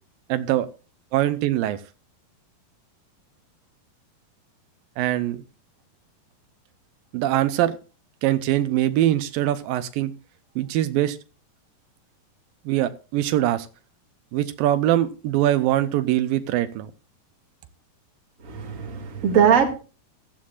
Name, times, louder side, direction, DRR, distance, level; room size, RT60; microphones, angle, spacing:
voice 1, 0.3-0.7 1.1-1.8 5.0-5.4 7.1-7.8 8.2-10.1 10.6-11.2 12.7-13.7 14.3-16.9, right 13 dB, 80° right, 12 dB, 2.4 m, -22 dB
voice 2, 18.4-19.7, right 7 dB, 25° right, 3 dB, 2.1 m, -20 dB
16.0 x 13.5 x 2.4 m, 0.34 s
omnidirectional pair, 4.1 m